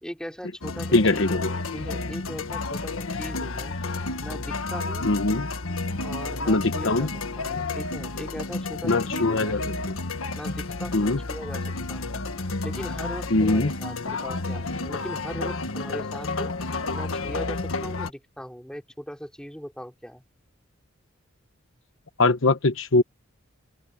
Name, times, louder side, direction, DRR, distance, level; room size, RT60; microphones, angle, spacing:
voice 1, 0.0-3.8 4.2-5.1 6.0-9.6 10.3-12.2 12.6-16.6 16.9-20.2, equal, 5° left, 4.9 m, -39 dB
sound 1, 0.6-18.1, left 3 dB, 85° left, 1.7 m, -31 dB
voice 2, 0.9-1.5 5.0-5.5 6.5-7.1 8.8-9.6 10.9-11.2 13.3-13.7 22.2-23.0, left 2 dB, 70° left, 1.1 m, -21 dB
head